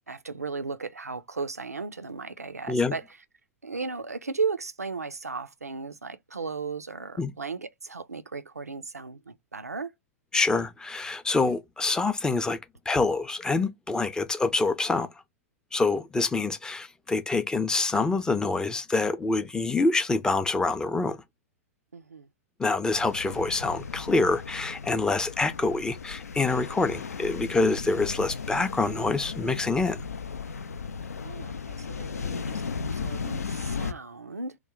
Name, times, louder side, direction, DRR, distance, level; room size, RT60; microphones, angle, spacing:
voice 1, 0.1-3.0 3.6-9.9 21.9-22.3 31.1-32.6 32.9-34.6, right 4 dB, 90° right, 0.4 m, -35 dB
voice 2, 10.3-12.6 12.9-15.1 15.7-21.2 22.6-30.0, left 3 dB, 10° left, 0.4 m, -26 dB
sound 1, 22.9-33.9, left 5 dB, 80° left, 0.4 m, -36 dB
3.0 x 2.1 x 3.7 m
figure-of-eight pair, 100°, 8 cm